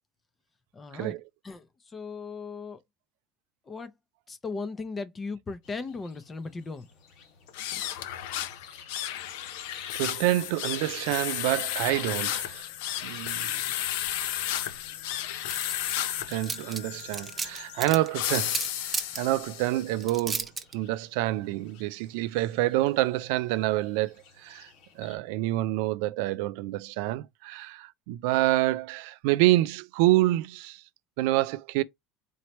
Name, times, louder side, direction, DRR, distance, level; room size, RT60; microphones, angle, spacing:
voice 1, 0.7-1.2 1.4-2.8 3.7-3.9 4.3-6.9 13.6-14.0, left 4 dB, 20° left, 0.6 m, -37 dB
sound 1, 5.6-25.2, left 6 dB, 65° left, 1.6 m, -54 dB
sound 2, 7.5-20.0, left 12 dB, 85° left, 0.6 m, -33 dB
voice 2, 9.9-12.7 13.0-13.5 16.3-20.5 20.7-24.7 25.0-30.8 31.2-31.8, right 17 dB, 75° right, 0.4 m, -27 dB
sound 3, 15.5-16.0 16.3-19.2 20.0-20.7, right 4 dB, 15° right, 0.6 m, -32 dB
4.3 x 3.1 x 3.0 m
cardioid pair, 145°, 0 cm